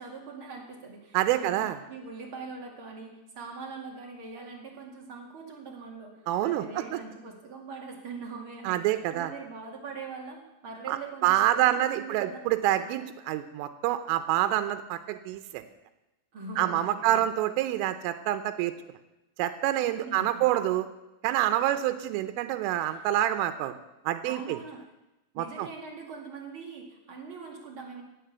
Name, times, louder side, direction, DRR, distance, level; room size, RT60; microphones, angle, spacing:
voice 1, 0.0-6.1 6.4-12.4 12.8-13.0 16.3-17.3 19.8-20.4 21.6-21.7 22.8-23.1 24.2-24.8 25.3-28.0, right 4 dB, 40° right, 0 dB, 1.9 m, -42 dB
voice 2, 1.1-1.8 6.3-7.0 8.7-9.3 10.9-15.6 16.6-18.7 19.4-20.9 21.2-23.7 24.1-24.6 25.4-25.7, right 13 dB, 85° right, 10 dB, 3.4 m, -27 dB
17.0 x 7.5 x 8.1 m, 0.96 s
omnidirectional pair, 5.6 m